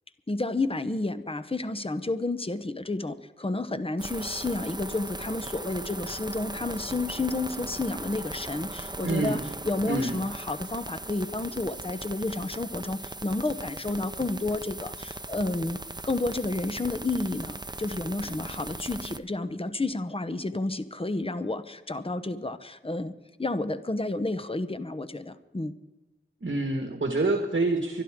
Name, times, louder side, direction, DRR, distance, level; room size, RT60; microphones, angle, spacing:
voice 1, 0.3-15.8 16.0-23.1 23.4-25.7, left 2 dB, 30° left, 11 dB, 0.9 m, -31 dB
sound 1, 4.0-19.2, right 2 dB, 20° right, 0.6 m, -39 dB
voice 2, 9.0-9.4 9.8-10.1 26.4-28.0, right 2 dB, 70° right, 3 dB, 1.7 m, -27 dB
25.0 x 11.0 x 3.7 m, 1.1 s
wide cardioid pair, 60°, 20 cm